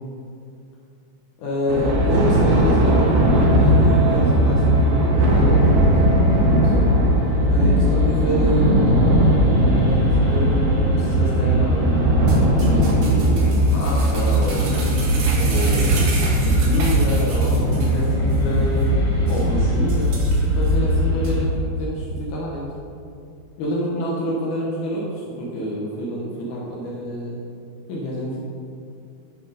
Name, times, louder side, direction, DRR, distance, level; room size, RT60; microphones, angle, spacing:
voice 1, 1.4-6.9 7.5-9.2 9.7-14.7 15.4-16.2 16.4-20.2 20.6-21.5 21.8-22.7 23.6-27.4 27.9-28.4, equal, 75° left, -4 dB, 2.4 m, -28 dB
Thunder, 1.7-19.4, right 1 dB, 80° right, 2.7 m, -21 dB
sound 1, 1.8-21.4, equal, 10° left, 0.3 m, -20 dB
sound 2, 12.3-18.0 18.3-18.4 18.8-18.9 19.3-19.4 19.9-20.7 21.2-21.3, right 2 dB, 65° right, 2.5 m, -31 dB
9.7 x 3.9 x 5.2 m, 2.5 s
omnidirectional pair, 3.7 m